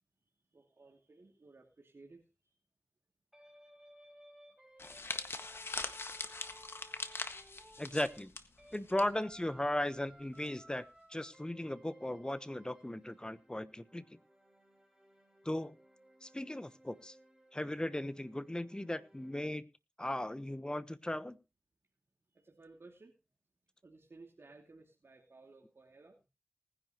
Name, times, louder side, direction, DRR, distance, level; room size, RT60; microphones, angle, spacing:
voice 1, 0.5-2.6 7.6-7.7 22.3-23.1 23.8-26.2, right 3 dB, 65° right, 0 dB, 2.6 m, -58 dB
sound 1, 3.3-8.8 9.1-19.3, right 1 dB, 5° right, 6.0 m, -61 dB
sound 2, 4.8-9.1 9.3-9.6 10.4-10.7, left 3 dB, 65° left, 1.6 m, -42 dB
voice 2, 7.8-8.3 8.7-10.8 11.1-14.0 15.4-15.7 16.2-17.1 17.5-19.7 20.0-21.4, left 1 dB, 20° left, 14 dB, 1.0 m, -37 dB
19.5 x 10.5 x 3.1 m, 0.27 s
cardioid pair, 45°, 5 cm